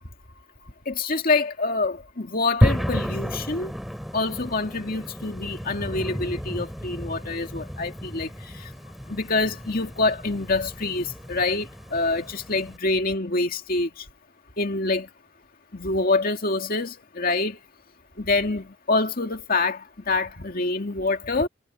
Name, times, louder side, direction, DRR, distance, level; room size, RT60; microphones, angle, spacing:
voice 1, 0.9-3.7 4.1-8.7 9.1-14.1 14.6-15.1 15.7-17.6 18.2-21.5, left 3 dB, 50° left, 2.2 m, -26 dB
sound 1, 2.6-12.8, equal, ahead, 5.7 m, -31 dB
head